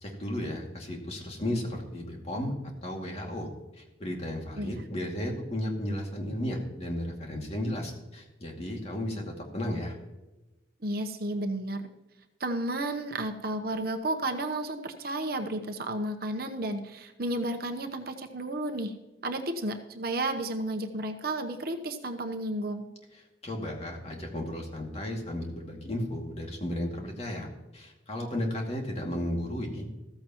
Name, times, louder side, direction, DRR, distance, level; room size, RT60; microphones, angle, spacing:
voice 1, 0.0-2.5 2.8-3.5 3.8-9.9 23.1-27.5 27.7-29.9, left 1 dB, 35° left, 0 dB, 2.3 m, -34 dB
voice 2, 10.8-11.8 12.4-18.9 19.2-22.8, right 1 dB, 55° right, 5 dB, 1.0 m, -32 dB
14.5 x 14.5 x 3.0 m, 1.0 s
head